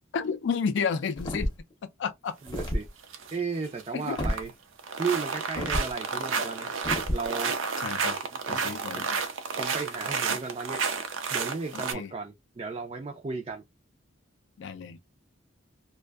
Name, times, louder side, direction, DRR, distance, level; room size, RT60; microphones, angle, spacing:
voice 1, 0.1-1.5 2.0-2.3 3.9-4.2 7.8-8.2 8.5-9.1 11.7-12.1 14.6-15.0, left 6 dB, 65° left, 0.3 m, -31 dB
sound 1, 1.2-1.7 2.5-2.9 4.2-4.4 5.6-5.9 6.8-7.3, equal, 20° left, 0.6 m, -29 dB
voice 2, 2.4-2.9 3.3-4.5 5.0-6.8 7.1-7.6 8.3-8.6 8.9-9.1 9.6-10.8 11.3-13.6, right 4 dB, 30° right, 0.3 m, -34 dB
sound 2, 2.5-2.7 3.0-3.4 3.7-4.5 4.8-11.9, right 5 dB, 80° right, 0.5 m, -31 dB
2.5 x 2.2 x 2.3 m
head